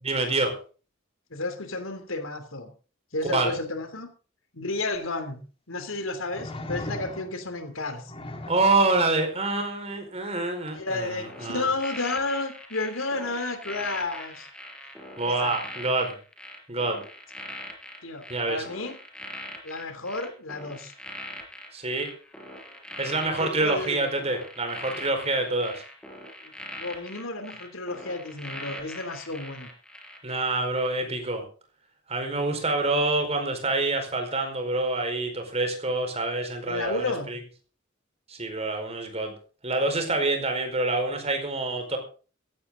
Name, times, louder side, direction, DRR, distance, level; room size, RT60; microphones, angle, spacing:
voice 1, 0.0-0.5 3.2-3.5 8.5-11.7 15.2-16.2 16.7-17.0 18.3-18.6 21.7-22.1 23.0-25.8 30.2-31.4 32.1-37.4 38.3-39.3 39.6-42.0, right 2 dB, 30° right, 4.8 m, -26 dB
voice 2, 1.3-2.7 3.1-4.1 4.5-5.4 5.7-8.1 10.7-14.5 15.2-15.6 18.0-19.0 19.6-20.9 23.4-24.1 26.4-29.7 36.7-37.3, left 2 dB, 85° left, 3.1 m, -32 dB
sound 1, 4.9-5.0 6.3-7.5 8.1-8.8 10.7-10.8, left 1 dB, 30° left, 2.4 m, -37 dB
sound 2, 11.3-30.4 30.7-31.0, equal, 5° left, 4.7 m, -42 dB
16.5 x 15.5 x 3.9 m
head